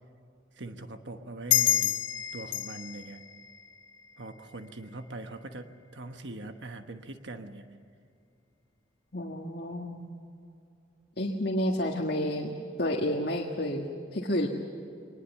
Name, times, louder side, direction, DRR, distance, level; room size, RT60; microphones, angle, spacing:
voice 1, 0.5-1.9 2.3-3.2 4.2-7.7, right 2 dB, 70° right, 7 dB, 1.2 m, -42 dB
sound 1, 1.5-4.6, left 12 dB, 80° left, 1.1 m, -29 dB
voice 2, 9.1-10.0 11.2-12.5 12.8-14.5, left 1 dB, 55° left, 0 dB, 1.7 m, -30 dB
23.0 x 20.0 x 7.3 m, 2.5 s
head